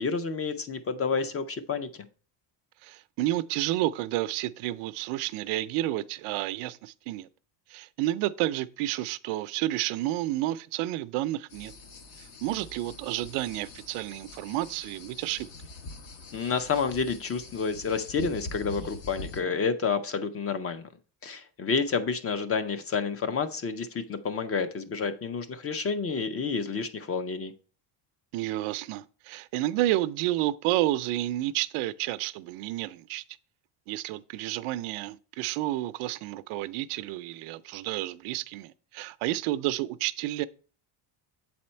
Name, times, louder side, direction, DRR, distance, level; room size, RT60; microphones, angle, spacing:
voice 1, 0.0-1.9 16.3-20.9 21.2-27.5, left 5 dB, 30° left, 0.5 m, -29 dB
voice 2, 2.8-7.3 7.7-11.7 12.2-15.5 28.3-33.2 33.9-40.5, right 15 dB, 90° right, 0.6 m, -30 dB
sound 1, 11.5-19.4, left 3 dB, 55° left, 1.3 m, -44 dB
7.6 x 4.3 x 4.3 m
cardioid pair, 145°, 49 cm